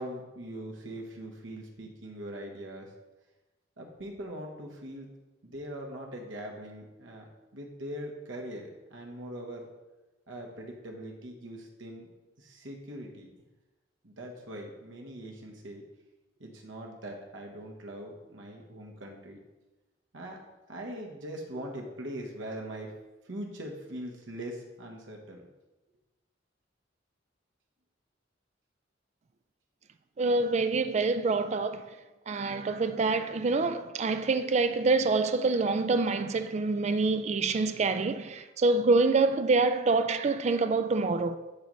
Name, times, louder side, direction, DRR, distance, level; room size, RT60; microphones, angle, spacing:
voice 1, 0.0-2.9 3.8-5.1 5.4-7.3 7.5-9.7 10.3-12.1 12.4-13.3 14.0-15.8 16.4-19.4 20.1-20.4 20.7-22.9 23.2-25.4, right 1 dB, 85° right, 1.3 m, -41 dB
voice 2, 30.2-32.0 32.3-41.4, right 3 dB, 35° right, 0.4 m, -26 dB
11.0 x 4.0 x 3.2 m
head